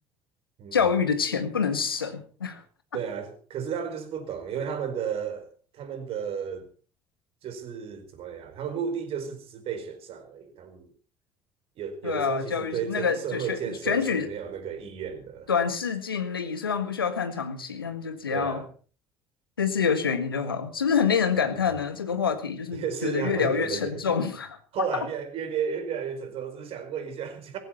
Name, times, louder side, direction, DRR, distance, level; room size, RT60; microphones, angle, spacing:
voice 1, 0.7-2.6 12.0-14.3 15.5-18.6 19.6-24.9, left 6 dB, 90° left, 1.8 m, -27 dB
voice 2, 2.9-6.7 7.4-10.9 11.8-15.5 18.3-18.7 21.6-21.8 22.7-24.0 24.7-27.6, right 7 dB, 55° right, 4.6 m, -33 dB
18.0 x 15.0 x 4.3 m
hypercardioid pair, 55°, 12 cm